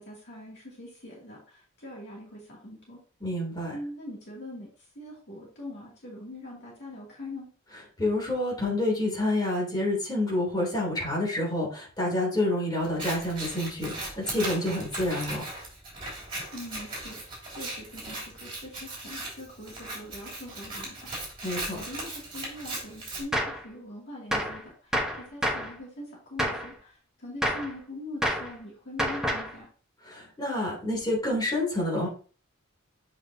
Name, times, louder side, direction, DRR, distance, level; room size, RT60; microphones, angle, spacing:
voice 1, 0.0-3.0 3.7-7.5 16.5-21.1 21.9-29.7, left 1 dB, 55° left, -3 dB, 2.5 m, -42 dB
voice 2, 3.2-3.8 8.0-15.4 21.4-21.8 30.0-32.1, left 1 dB, 20° left, -4 dB, 3.1 m, -28 dB
Scissors, 12.8-23.2, right 2 dB, 25° right, 3.2 m, -38 dB
Gunshot gunfire, 23.3-23.6 24.3-24.6 24.9-25.7 26.4-26.7 27.4-27.7 28.2-28.5 29.0-29.5, equal, 5° right, 1.0 m, -28 dB
7.9 x 5.2 x 2.8 m, 0.39 s
head